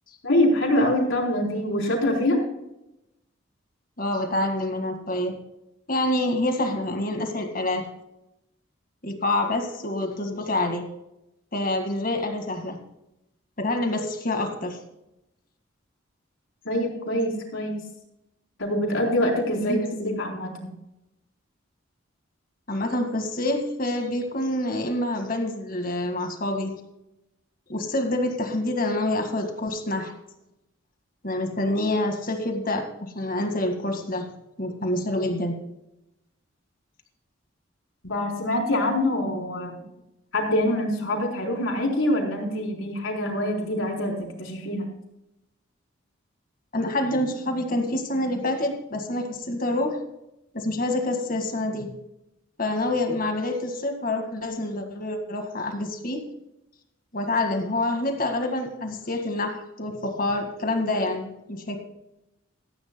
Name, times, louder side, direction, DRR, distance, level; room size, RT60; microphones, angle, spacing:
voice 1, 0.2-2.4 16.6-17.8 18.6-19.8 20.2-20.7 38.0-39.8 40.3-44.9, left 1 dB, 90° left, 0 dB, 4.0 m, -25 dB
voice 2, 4.0-5.4 5.9-7.9 9.0-10.9 11.5-12.8 13.6-14.8 19.6-20.2 22.7-26.8 27.7-30.1 31.2-34.3 34.6-35.6 46.7-50.0 50.5-51.9 52.6-56.3 57.1-61.8, left 1 dB, 45° left, 5 dB, 1.9 m, -27 dB
15.5 x 14.5 x 2.3 m, 0.87 s
head